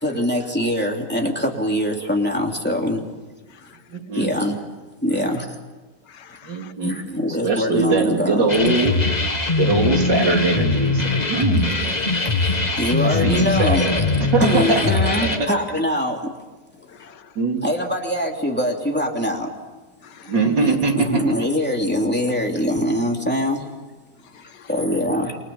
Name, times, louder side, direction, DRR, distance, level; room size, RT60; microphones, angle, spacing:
voice 1, 0.0-3.0 4.1-4.6 5.0-5.6 6.8-8.7 11.8-12.0 12.8-16.3 17.6-19.5 20.6-23.7 24.7-25.4, equal, 5° left, 1 dB, 2.9 m, -23 dB
voice 2, 3.9-4.3 6.4-6.9 7.4-9.0 9.6-11.8 13.2-13.9 14.3-14.8 17.4-17.6 20.3-21.2, right 3 dB, 85° right, 2 dB, 3.9 m, -21 dB
voice 3, 6.1-6.7 9.5-9.6 16.9-17.3 20.0-20.3 24.3-24.7, left 8 dB, 80° left, 11 dB, 1.7 m, -47 dB
sound 1, 8.5-15.4, left 3 dB, 25° left, 1.7 m, -21 dB
28.5 x 24.0 x 7.1 m, 1.2 s
omnidirectional pair, 1.9 m